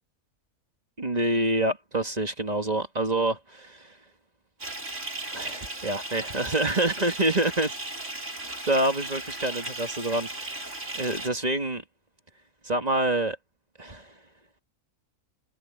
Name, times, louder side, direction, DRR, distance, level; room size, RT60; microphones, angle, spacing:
voice 1, 1.0-4.0 5.3-7.7 8.7-11.8 12.6-13.4 13.8-14.1, right 1 dB, 25° right, 1.9 m, -27 dB
Bathtub (filling or washing) / Fill (with liquid), 4.6-11.3, right 2 dB, 55° right, 6.0 m, -36 dB
omnidirectional pair, 1.5 m